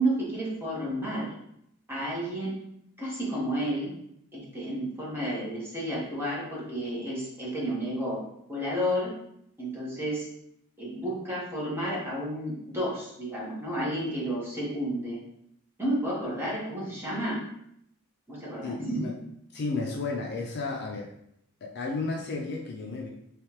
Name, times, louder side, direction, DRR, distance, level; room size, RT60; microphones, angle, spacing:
voice 1, 0.0-1.3 1.9-2.6 3.0-3.9 4.3-8.2 8.5-9.1 9.6-10.2 10.8-15.2 15.8-17.4 18.3-19.0, right 1 dB, 10° right, -6 dB, 1.2 m, -31 dB
voice 2, 18.6-19.1 19.5-21.1 21.6-23.1, left 3 dB, 50° left, 0 dB, 0.5 m, -33 dB
3.2 x 3.2 x 3.1 m, 0.75 s
head